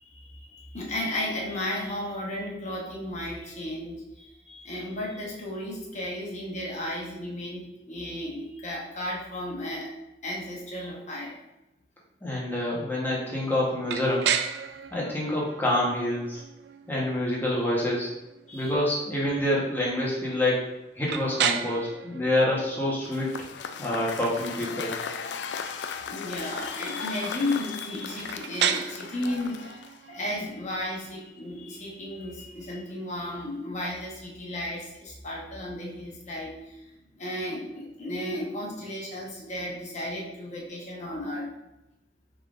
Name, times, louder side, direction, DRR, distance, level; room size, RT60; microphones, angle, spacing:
voice 1, 0.0-9.9 10.2-11.4 18.5-18.8 26.0-36.8 37.1-41.5, left 1 dB, 40° left, -3 dB, 1.1 m, -34 dB
voice 2, 12.2-14.3 14.9-16.4 16.9-18.1 18.5-20.6 21.0-23.3 23.8-24.9, left 1 dB, 10° left, -5 dB, 1.1 m, -27 dB
sound 1, 13.9-33.6, right 8 dB, 65° right, 0.3 m, -35 dB
Cheering / Applause / Crowd, 23.0-30.1, left 6 dB, 75° left, 0.3 m, -37 dB
5.5 x 3.6 x 2.5 m, 0.95 s
head